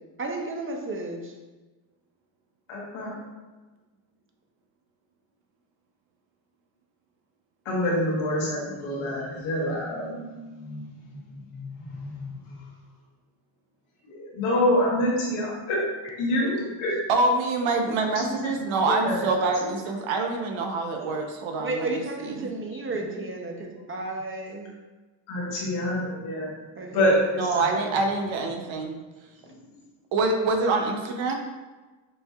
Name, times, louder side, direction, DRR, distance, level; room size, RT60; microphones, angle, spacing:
voice 1, 0.2-1.4 16.4-16.8 21.6-24.7 26.7-27.2 29.5-29.6, right 2 dB, 25° right, 2 dB, 0.7 m, -33 dB
voice 2, 2.7-3.1 7.6-12.5 14.0-15.8 16.2-16.9 18.1-19.3 19.6-19.7 25.3-26.6 26.9-27.9 29.5-29.7, left 1 dB, 90° left, -4 dB, 1.4 m, -27 dB
voice 3, 17.1-22.0 22.4-22.5 27.4-29.0 30.1-31.4, right 3 dB, 75° right, 3 dB, 0.8 m, -25 dB
6.2 x 2.7 x 2.3 m, 1.2 s
cardioid pair, 90°, 47 cm